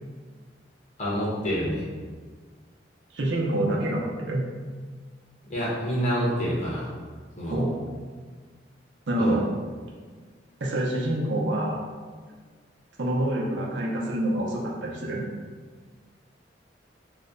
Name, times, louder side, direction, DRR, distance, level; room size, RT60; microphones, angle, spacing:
voice 1, 1.0-1.9 5.5-6.9 7.4-7.6 9.2-9.4, equal, 40° left, -7 dB, 1.0 m, -27 dB
voice 2, 3.1-4.5 7.5-7.7 9.1-9.4 10.6-11.8 13.0-15.2, right 1 dB, 90° right, -3 dB, 0.6 m, -26 dB
3.1 x 2.1 x 3.7 m, 1.5 s
head